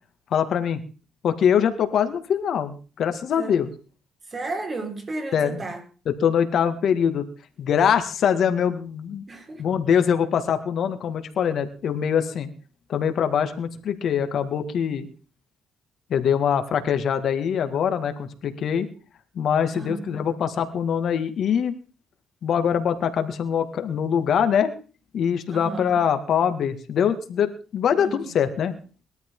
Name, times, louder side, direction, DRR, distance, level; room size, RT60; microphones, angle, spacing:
voice 1, 0.3-0.8 1.2-3.7 5.3-5.6 6.1-7.2 7.6-9.2 9.6-12.5 12.9-15.1 16.1-18.9 19.4-21.7 22.4-24.7 25.1-28.7, left 8 dB, 60° left, 2.1 m, -23 dB
voice 2, 4.3-5.8 9.3-9.6 19.7-20.2 25.5-26.0 28.0-28.3, right 2 dB, 30° right, 4.8 m, -33 dB
21.5 x 13.0 x 3.8 m
cardioid pair, 105°, 0 cm